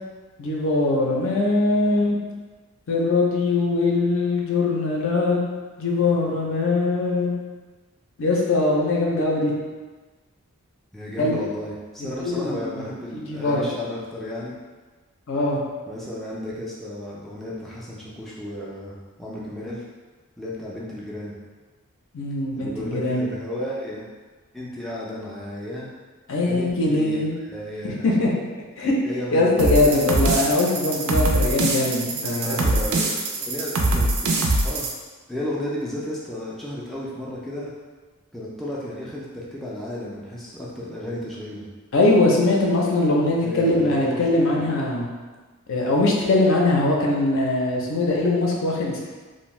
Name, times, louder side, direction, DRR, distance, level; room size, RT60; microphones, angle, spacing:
voice 1, 0.4-2.2 2.9-5.4 5.8-7.3 8.2-9.5 11.2-11.4 12.2-12.9 13.1-13.7 15.3-15.6 22.1-23.3 26.3-27.3 27.8-28.3 28.8-28.9 29.3-32.7 41.9-45.1 45.7-49.1, left 2 dB, 60° left, -2 dB, 0.5 m, -21 dB
voice 2, 10.9-14.5 15.9-19.8 20.4-21.4 22.5-24.1 24.5-25.9 26.4-28.2 29.0-30.5 32.4-34.3 34.6-34.9 35.3-37.7 38.3-41.7 43.4-44.2 44.5-44.6, left 1 dB, ahead, -7 dB, 0.3 m, -33 dB
sound 1, 29.6-34.9, right 2 dB, 70° right, 0.4 m, -23 dB
2.6 x 2.1 x 3.1 m, 1.3 s
head